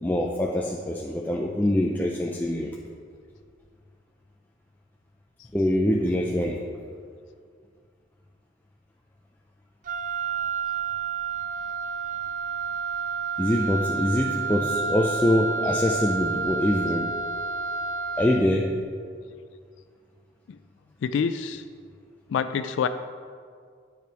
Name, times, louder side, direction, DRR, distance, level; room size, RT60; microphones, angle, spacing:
voice 1, 0.0-2.8 5.5-6.7 13.4-17.1 18.2-18.7, left 1 dB, 10° left, -1 dB, 0.4 m, -24 dB
Wind instrument woodwind instrument, 9.8-18.6, right 5 dB, 45° right, 0.5 m, -30 dB
voice 2, 21.0-21.6 22.3-22.9, left 6 dB, 80° left, 10 dB, 0.3 m, -26 dB
9.4 x 5.1 x 4.6 m, 2.1 s
head